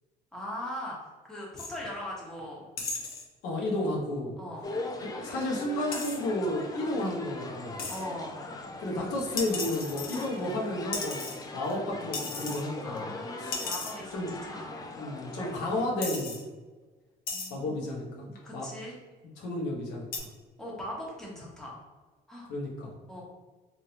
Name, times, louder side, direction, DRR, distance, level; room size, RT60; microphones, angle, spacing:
voice 1, 0.3-2.6 4.4-4.7 7.9-8.5 12.8-14.8 17.3-19.0 20.6-21.7 22.3-22.5 23.1-23.2, left 1 dB, 5° left, -5 dB, 1.0 m, -40 dB
sound 1, 1.6-1.8 2.8-3.2 5.9-6.2 7.8-8.0 9.4-10.5 10.9-11.7 12.1-12.6 13.0-13.1 13.5-14.0 14.9-15.0 15.6-15.7 16.0-16.4 17.3-17.5 18.4-18.7 20.1-20.2, left 3 dB, 60° left, 0.9 m, -35 dB
voice 2, 3.4-4.3 5.0-7.8 8.8-11.3 11.5-13.1 13.4-13.6 14.1-14.3 15.0-16.5 17.5-18.6 19.4-20.1 22.5-22.9, left 1 dB, 90° left, -3 dB, 1.0 m, -32 dB
sound 2, 4.6-15.9, left 2 dB, 20° left, 0.4 m, -40 dB
3.1 x 2.7 x 2.9 m, 1.3 s
cardioid pair, 110°, 17 cm